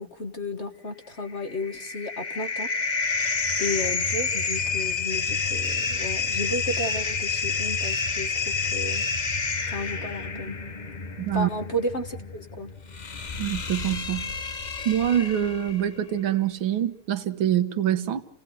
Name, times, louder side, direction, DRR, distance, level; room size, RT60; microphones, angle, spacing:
voice 1, 0.0-2.7 3.6-9.0 9.7-10.6 11.3-12.7, left 1 dB, 35° left, 7 dB, 1.5 m, -33 dB
sound 1, 1.3-15.9, left 4 dB, 70° left, 0.4 m, -29 dB
voice 2, 11.2-11.5 13.4-14.3 14.9-18.2, right 11 dB, 65° right, 11 dB, 2.0 m, -25 dB
29.5 x 17.5 x 7.8 m, 0.76 s
omnidirectional pair, 2.4 m